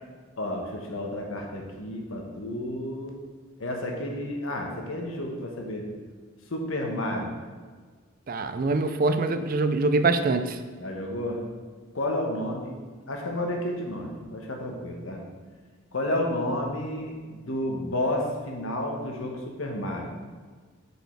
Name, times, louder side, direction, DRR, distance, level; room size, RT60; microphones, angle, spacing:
voice 1, 0.4-3.2 3.6-5.8 6.5-7.3 10.8-11.4 11.9-12.7 13.1-15.2 15.9-20.1, left 1 dB, 65° left, 1 dB, 1.2 m, -31 dB
voice 2, 8.3-10.6, right 3 dB, 40° right, 9 dB, 0.4 m, -24 dB
6.6 x 5.3 x 4.5 m, 1.5 s
head